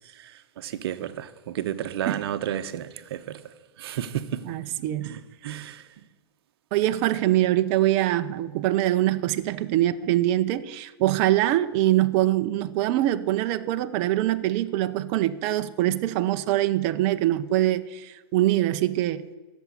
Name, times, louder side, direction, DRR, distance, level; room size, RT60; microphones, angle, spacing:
voice 1, 0.2-3.4 3.8-4.4 5.0-5.8, right 10 dB, 60° right, 1.0 m, -32 dB
voice 2, 4.4-5.1 6.7-19.2, right 14 dB, 35° right, 0.6 m, -23 dB
13.0 x 7.1 x 9.6 m
hypercardioid pair, 140°, 14 cm